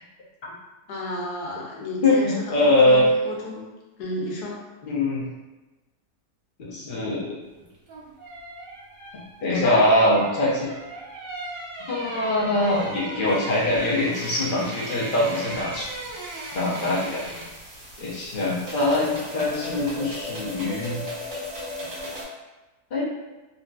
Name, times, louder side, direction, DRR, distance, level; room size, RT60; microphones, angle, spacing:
voice 1, 0.9-3.7 4.0-4.6 9.5-9.8, left 1 dB, 85° left, -3 dB, 1.2 m, -32 dB
voice 2, 2.0-3.1 4.8-5.3 6.6-7.4 9.4-10.7 11.9-15.9 16.5-17.2 18.0-21.0 22.9-23.1, left 1 dB, 60° left, -5 dB, 0.5 m, -22 dB
sound 1, 7.7-17.7 17.9-18.1, right 2 dB, 70° right, 0.5 m, -38 dB
sound 2, 15.8-22.2, left 1 dB, 50° right, 1.1 m, -36 dB
2.8 x 2.6 x 2.2 m, 1.1 s
omnidirectional pair, 1.7 m